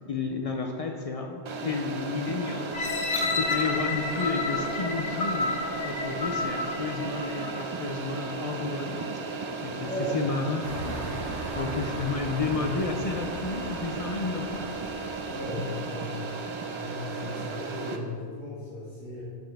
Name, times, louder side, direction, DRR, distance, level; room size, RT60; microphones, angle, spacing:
voice 1, 0.1-5.5 5.8-14.7, left 4 dB, 60° left, 3 dB, 0.4 m, -32 dB
sound 1, 1.4-18.0, right 4 dB, 55° right, 0.3 m, -35 dB
sound 2, 2.7-7.7 8.2-8.3, left 3 dB, 85° left, 1.2 m, -30 dB
voice 2, 9.8-10.1 15.2-16.3 16.8-19.2, left 1 dB, 10° left, -12 dB, 1.8 m, -36 dB
sound 3, 10.6-16.0, right 2 dB, 90° right, 1.3 m, -39 dB
7.8 x 5.5 x 3.4 m, 2.1 s
omnidirectional pair, 1.2 m